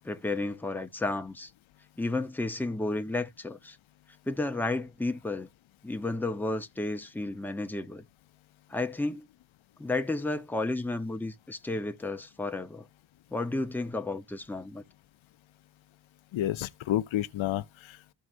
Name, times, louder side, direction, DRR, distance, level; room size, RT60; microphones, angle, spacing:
voice 1, 0.0-1.5 2.0-3.8 4.3-5.5 5.8-8.0 8.7-9.3 9.8-12.9 13.3-14.8, left 2 dB, 5° left, 0.7 m, -32 dB
voice 2, 16.3-18.1, left 13 dB, 85° left, 0.7 m, -30 dB
14.0 x 4.7 x 2.5 m
wide cardioid pair, 140°, 46 cm